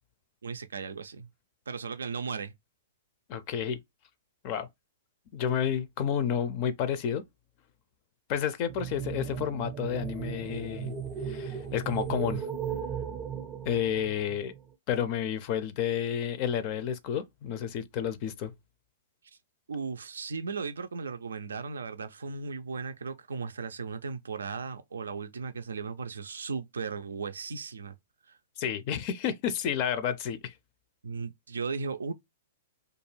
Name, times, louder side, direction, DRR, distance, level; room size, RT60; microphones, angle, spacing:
voice 1, 0.4-1.3 1.7-2.5 19.7-27.9 28.2-28.4 31.0-32.1, right 5 dB, 80° right, 0.3 m, -36 dB
voice 2, 3.3-3.8 4.4-4.7 5.3-7.2 8.3-11.0 11.2-12.5 13.6-14.5 14.9-18.5 28.6-30.5, left 8 dB, 45° left, 0.4 m, -30 dB
sound 1, 8.7-14.6, right 8 dB, 25° right, 0.6 m, -36 dB
2.4 x 2.2 x 3.1 m
hypercardioid pair, 115°, 0 cm